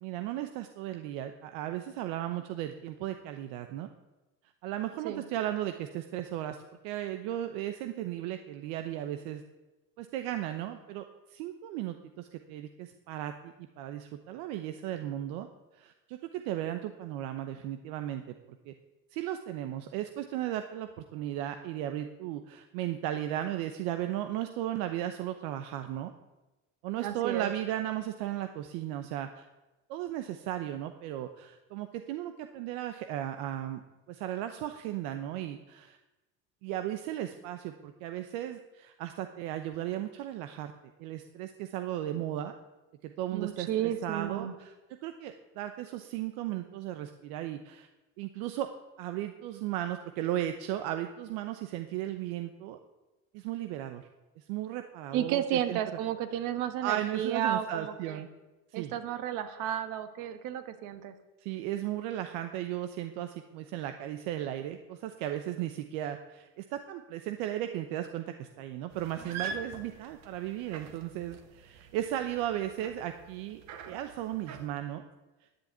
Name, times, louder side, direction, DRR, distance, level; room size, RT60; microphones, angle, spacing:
voice 1, 0.0-3.9 4.6-9.4 10.0-15.5 15.7-18.2 18.7-18.8 19.1-26.1 26.8-29.5 29.9-33.8 34.1-36.0 36.6-42.5 43.0-44.7 45.0-47.9 48.2-48.7 49.0-52.8 53.3-54.1 54.4-55.8 56.8-58.3 58.7-58.9 61.4-75.0, right 12 dB, 85° right, 8 dB, 0.9 m, -36 dB
voice 2, 27.0-27.5 43.3-44.5 55.1-58.2 58.7-61.1, right 10 dB, 70° right, 10 dB, 1.4 m, -32 dB
sound 1, 68.9-74.7, right 5 dB, 55° right, 1.5 m, -45 dB
10.5 x 7.2 x 9.3 m, 1.1 s
cardioid pair, 145°, 32 cm